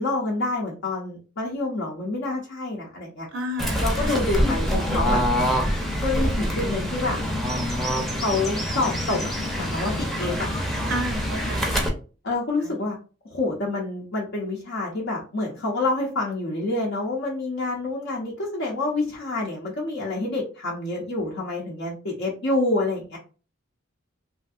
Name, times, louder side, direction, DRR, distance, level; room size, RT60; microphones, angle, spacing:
voice 1, 0.0-3.3 3.8-5.2 6.0-7.2 8.1-9.3 9.6-10.5 12.2-13.0 13.3-23.2, left 2 dB, 60° left, -3 dB, 0.7 m, -27 dB
voice 2, 3.3-4.2 10.9-11.9 12.6-12.8, right 1 dB, 60° right, 5 dB, 0.5 m, -32 dB
Fowl / Bird, 3.6-11.9, equal, ahead, 0.5 m, -25 dB
3.2 x 2.6 x 2.4 m, 0.36 s
head